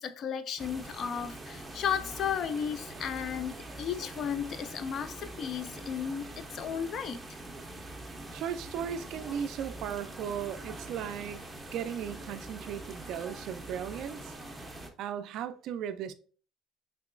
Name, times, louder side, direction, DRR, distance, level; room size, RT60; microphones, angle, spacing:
voice 1, 0.0-7.2, left 8 dB, 45° left, 0.3 m, -34 dB
sound 1, 0.6-14.9, right 2 dB, 10° right, 0.5 m, -44 dB
voice 2, 8.3-14.3 15.0-16.1, right 8 dB, 60° right, 0.3 m, -37 dB
3.8 x 2.9 x 2.4 m
cardioid pair, 120°, 0 cm